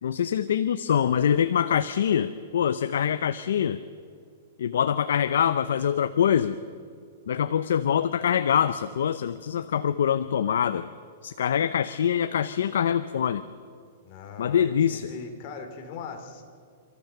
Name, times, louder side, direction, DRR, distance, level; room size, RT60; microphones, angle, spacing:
voice 1, 0.0-3.8 4.6-6.6 7.3-10.9 11.2-13.4 14.4-15.1, left 8 dB, 85° left, 12 dB, 0.7 m, -24 dB
voice 2, 14.0-16.4, left 5 dB, 40° left, 4 dB, 2.8 m, -40 dB
29.5 x 13.5 x 6.9 m, 2.2 s
hypercardioid pair, 155°, 0 cm